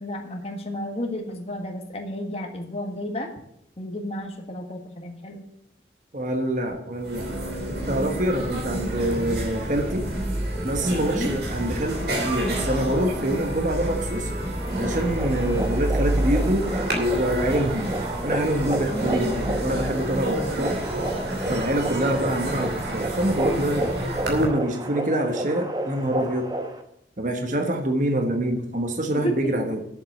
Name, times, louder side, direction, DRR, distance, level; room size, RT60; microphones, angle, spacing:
voice 1, 0.0-3.3 3.8-5.4 11.1-11.3 18.9-19.4 29.1-29.6, equal, 35° left, 2 dB, 1.5 m, -32 dB
voice 2, 6.1-7.3 7.7-10.0 10.6-14.3 14.7-16.7 17.0-17.9 18.2-20.8 21.4-23.9 24.2-26.5 27.2-29.9, right 1 dB, 45° right, 4 dB, 1.3 m, -25 dB
sound 1, 6.7-6.8 7.0-24.5, right 1 dB, 70° right, 3.0 m, -28 dB
sound 2, 14.6-26.8, right 2 dB, 25° right, 1.0 m, -32 dB
8.0 x 7.5 x 8.3 m, 0.74 s
head